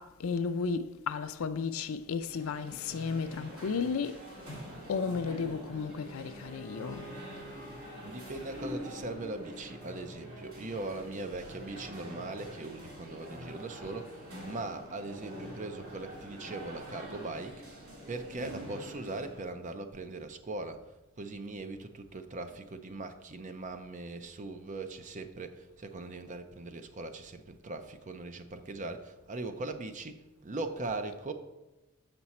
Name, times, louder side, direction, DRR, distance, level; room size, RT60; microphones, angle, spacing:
voice 1, 0.0-4.2 4.9-7.1 10.8-10.9, left 5 dB, 75° left, 0.4 m, -34 dB
sound 1, 2.2-19.5, equal, 80° right, 2.6 m, -45 dB
Bowed string instrument, 6.2-10.9, right 2 dB, 15° left, 0.8 m, -53 dB
voice 2, 8.0-20.8 21.2-31.3, right 2 dB, 35° right, 0.5 m, -40 dB
6.7 x 6.0 x 4.2 m
head